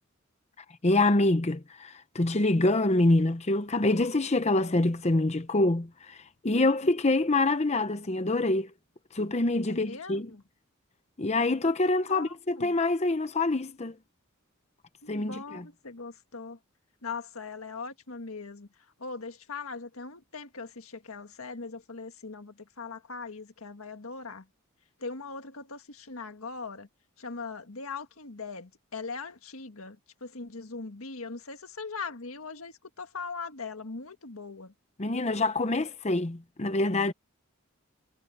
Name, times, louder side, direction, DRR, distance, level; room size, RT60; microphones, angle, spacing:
voice 1, 0.8-8.7 9.1-10.3 11.2-14.0 15.1-15.6 35.0-37.1, left 2 dB, 30° left, 0.8 m, -26 dB
voice 2, 9.7-10.4 11.8-12.7 15.0-16.6 17.0-24.5 25.0-26.9 27.2-34.7, left 4 dB, 90° left, 1.7 m, -40 dB
head